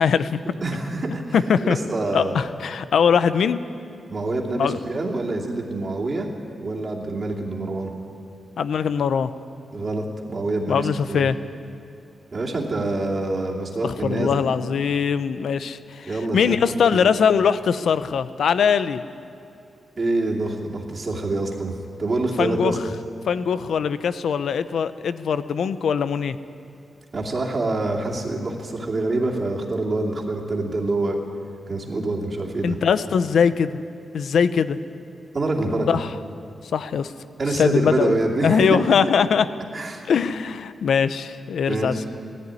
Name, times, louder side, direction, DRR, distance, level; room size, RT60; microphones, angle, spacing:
voice 1, 0.0-0.4 1.3-1.8 2.1-3.6 4.6-4.8 8.6-9.3 10.7-11.4 13.8-19.0 22.4-22.8 23.3-26.4 32.6-33.8 34.1-34.8 35.9-36.1 36.7-37.1 37.5-39.5 40.0-42.0, left 7 dB, 70° left, 13 dB, 0.8 m, -21 dB
voice 2, 0.6-1.3 1.6-2.4 4.1-6.3 6.6-7.9 9.7-11.3 12.3-14.4 16.1-17.1 20.0-22.8 27.1-31.2 31.7-32.8 35.3-35.9 37.4-38.8 39.7-40.0 41.7-42.0, right 2 dB, 30° right, -1 dB, 2.6 m, -26 dB
19.0 x 15.0 x 9.8 m, 2.4 s
wide cardioid pair, 175°, 0 cm